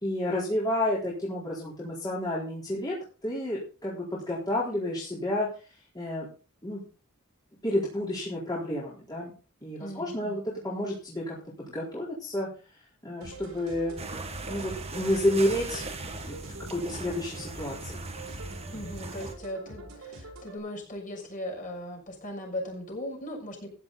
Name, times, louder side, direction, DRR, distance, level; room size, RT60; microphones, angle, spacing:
voice 1, 0.0-2.9 3.2-5.5 5.9-6.3 6.6-6.9 7.6-9.3 9.6-11.4 11.7-12.5 13.0-14.0 14.5-15.9 16.3-16.4 16.7-18.0, left 1 dB, 20° left, -6 dB, 4.2 m, -30 dB
voice 2, 9.8-10.4 18.7-23.7, left 1 dB, 40° left, 0 dB, 6.7 m, -38 dB
sound 1, 13.2-20.6, right 2 dB, 90° right, 4.6 m, -45 dB
sound 2, 14.0-19.3, right 3 dB, 30° right, 1.9 m, -39 dB
15.0 x 10.5 x 4.1 m, 0.36 s
head